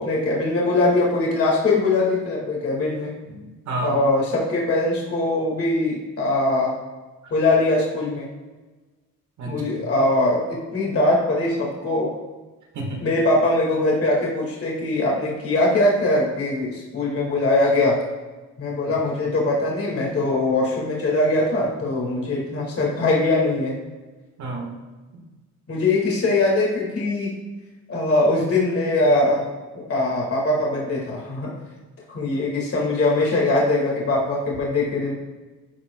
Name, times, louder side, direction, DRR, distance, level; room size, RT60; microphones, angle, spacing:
voice 1, 0.0-3.1 3.8-6.7 7.3-8.3 9.4-12.1 13.0-18.0 18.6-23.7 25.7-27.3 27.9-29.4 29.7-31.5 32.1-35.1, left 2 dB, 50° left, -3 dB, 2.1 m, -21 dB
voice 2, 3.3-3.9 9.4-9.9 12.7-13.1 24.4-24.7, right 2 dB, 70° right, -1 dB, 1.7 m, -31 dB
12.5 x 4.6 x 2.3 m, 1.2 s
cardioid pair, 90°, 30 cm